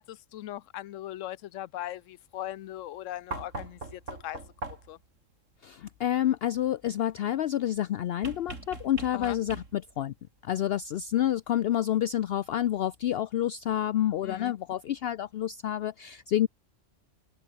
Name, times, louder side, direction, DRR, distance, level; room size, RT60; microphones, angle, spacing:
voice 1, 0.0-4.4 4.7-5.0 9.1-9.4 14.2-14.5, left 13 dB, 85° left, 1.0 m, -39 dB
sound 1, 3.3-5.1 8.2-10.0 11.5-11.6, right 3 dB, 85° right, 4.4 m, -40 dB
voice 2, 5.6-10.1 10.4-16.5, left 11 dB, 65° left, 0.7 m, -28 dB
omnidirectional pair, 1.3 m